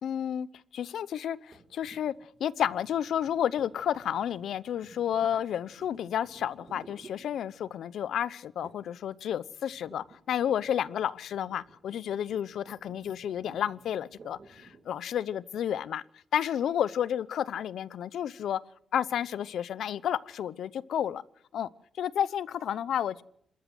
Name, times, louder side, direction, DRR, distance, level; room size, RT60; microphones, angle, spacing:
voice 1, 0.0-0.5 0.7-2.1 2.4-16.0 16.3-18.6 18.9-21.2 21.5-21.7 22.0-23.2, left 9 dB, 80° left, 18 dB, 0.7 m, -31 dB
sound 1, 1.5-7.8 8.6-9.0 9.3-15.0, right 4 dB, 40° right, 2.4 m, -56 dB
27.0 x 13.5 x 7.7 m, 0.71 s
wide cardioid pair, 135°, 0 cm